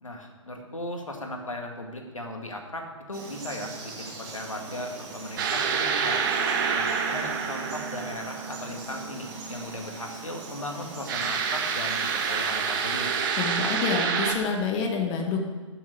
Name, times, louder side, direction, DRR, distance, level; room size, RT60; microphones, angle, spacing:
voice 1, 0.0-6.2 6.7-13.2, left 1 dB, 85° left, 3 dB, 2.0 m, -37 dB
Frog, 3.1-12.5, right 4 dB, 25° right, 2.4 m, -40 dB
sound 1, 5.4-8.8 11.1-14.3, right 6 dB, 40° right, 1.3 m, -27 dB
voice 2, 13.3-15.4, left 5 dB, 25° left, 3 dB, 1.2 m, -27 dB
12.5 x 7.0 x 6.5 m, 1.4 s
figure-of-eight pair, 125°, 16 cm